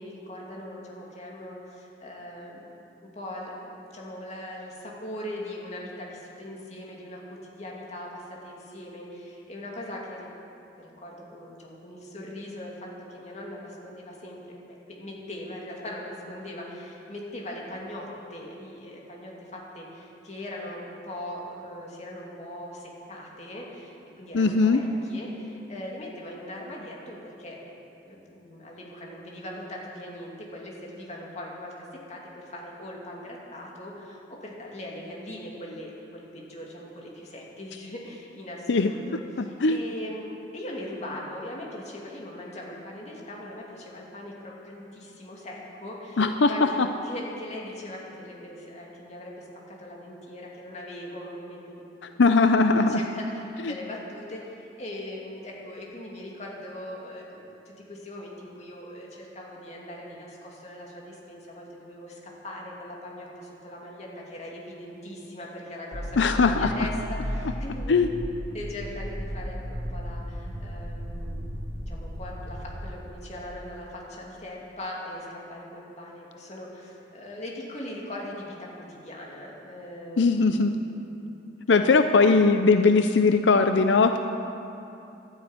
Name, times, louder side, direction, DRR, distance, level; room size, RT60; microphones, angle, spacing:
voice 1, 0.0-2.7 3.0-10.3 10.8-14.6 14.9-27.6 28.1-51.9 52.8-68.0 68.5-71.5 71.9-80.7 81.7-82.3, left 1 dB, 40° left, -3 dB, 2.7 m, -40 dB
voice 2, 24.3-24.8 38.7-38.9 39.6-39.8 46.2-46.5 52.2-53.0 66.2-66.7 67.9-68.1 80.2-80.7 81.7-84.2, left 4 dB, 90° left, 7 dB, 0.6 m, -19 dB
sound 1, 65.9-72.8, equal, 70° right, 3.2 m, -34 dB
12.0 x 10.5 x 9.0 m, 2.8 s
head